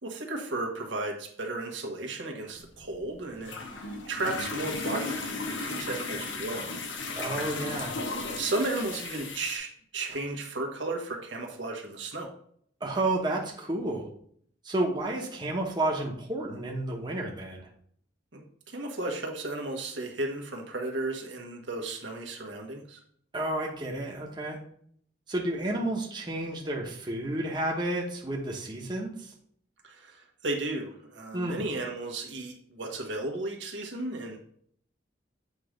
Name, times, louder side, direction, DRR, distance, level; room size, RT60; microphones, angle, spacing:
voice 1, 0.0-6.8 7.1-7.5 8.4-12.3 18.3-23.0 29.8-34.4, right 2 dB, 75° right, 2 dB, 1.3 m, -34 dB
sound 1, 2.5-9.6, left 3 dB, 85° left, 1.1 m, -35 dB
voice 2, 7.1-8.0 12.8-14.1 14.6-17.7 23.3-24.6 25.3-29.3 31.3-31.7, right 1 dB, 25° right, -1 dB, 1.0 m, -31 dB
7.9 x 3.1 x 5.1 m, 0.63 s
head